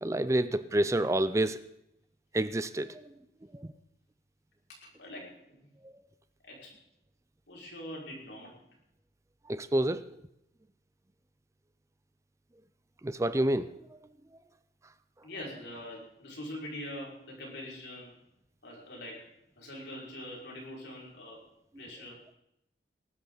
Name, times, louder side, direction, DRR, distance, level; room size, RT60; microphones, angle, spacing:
voice 1, 0.0-1.6 2.3-3.0 3.5-3.7 9.5-10.0 13.0-13.7, right 1 dB, 15° right, 14 dB, 0.5 m, -28 dB
voice 2, 4.8-5.7 6.4-6.8 7.5-8.6 15.2-18.2 18.6-21.4 21.8-22.2, left 1 dB, 85° left, -3 dB, 5.5 m, -43 dB
19.5 x 12.5 x 4.0 m, 0.82 s
head